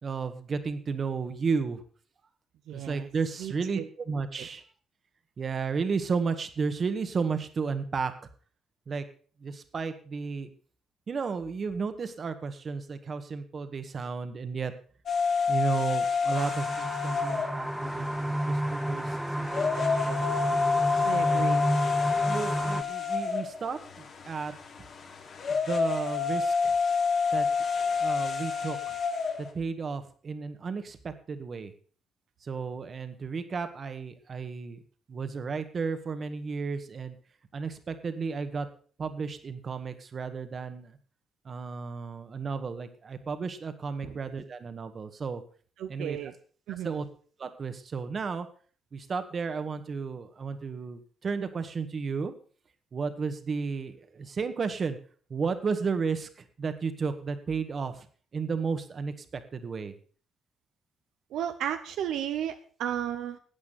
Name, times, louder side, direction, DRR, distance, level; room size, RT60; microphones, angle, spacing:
voice 1, 0.0-1.8 2.7-4.6 5.4-8.1 8.9-9.1 9.4-10.5 11.1-14.7 15.5-20.3 21.2-21.4 22.3-24.5 25.5-26.7 27.3-27.5 27.8-29.0 29.4-31.7 32.4-34.8 35.1-37.2 37.5-38.7 39.0-41.0 41.5-45.4 45.9-46.2 46.8-47.1 47.4-48.5 48.9-52.3 52.9-55.0 55.3-58.1 58.3-60.0, right 5 dB, 45° right, 9 dB, 1.8 m, -33 dB
voice 2, 2.7-3.1 3.4-3.9 4.4-4.5 21.0-21.7 44.0-44.2 45.8-46.3 46.7-47.0 61.3-63.4, right 10 dB, 80° right, 8 dB, 0.8 m, -34 dB
sound 1, 15.1-29.5, left 5 dB, 60° left, 3.0 m, -29 dB
sound 2, 16.3-22.8, right 1 dB, 5° right, 0.8 m, -30 dB
13.5 x 8.7 x 5.8 m, 0.43 s
cardioid pair, 90°, 0 cm